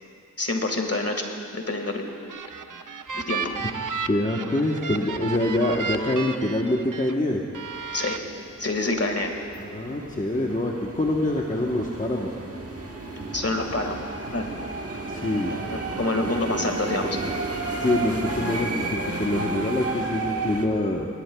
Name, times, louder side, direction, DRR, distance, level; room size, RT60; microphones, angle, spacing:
voice 1, 0.4-1.2 1.5-2.2 3.1-3.5 7.9-8.2 8.6-9.3 13.3-14.0 14.3-14.5 15.7-17.2, left 2 dB, 45° left, 3 dB, 1.8 m, -27 dB
sound 1, 2.1-7.1 7.5-8.2, right 5 dB, 70° right, 0.6 m, -33 dB
voice 2, 4.1-7.4 9.6-12.3 15.1-15.5 17.8-21.1, left 1 dB, 25° left, -1 dB, 1.1 m, -25 dB
sound 2, 7.6-20.7, right 3 dB, 45° right, 1.3 m, -33 dB
19.5 x 18.0 x 2.3 m, 2.3 s
wide cardioid pair, 40°, 33 cm